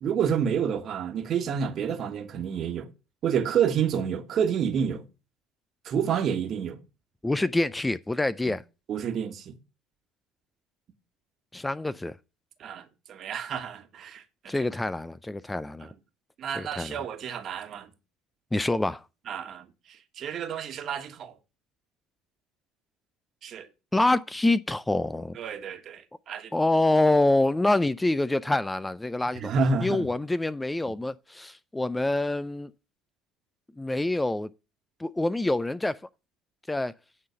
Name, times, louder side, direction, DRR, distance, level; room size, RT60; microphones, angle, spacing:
voice 1, 0.0-2.9 3.2-5.0 5.8-6.8 8.5-8.6 8.9-9.6 12.6-14.5 16.4-17.9 19.3-19.7 20.2-21.3 23.4-23.7 25.4-26.5 29.4-30.1, right 7 dB, 50° right, 1.4 m, -29 dB
voice 2, 7.2-8.6 11.5-12.2 14.5-15.9 16.5-17.0 18.5-19.0 23.9-25.4 26.5-29.5 29.8-32.7 33.8-34.5 35.0-36.0 36.7-36.9, left 2 dB, 10° left, 0.4 m, -26 dB
9.3 x 3.9 x 6.9 m
hypercardioid pair, 75°, 0 cm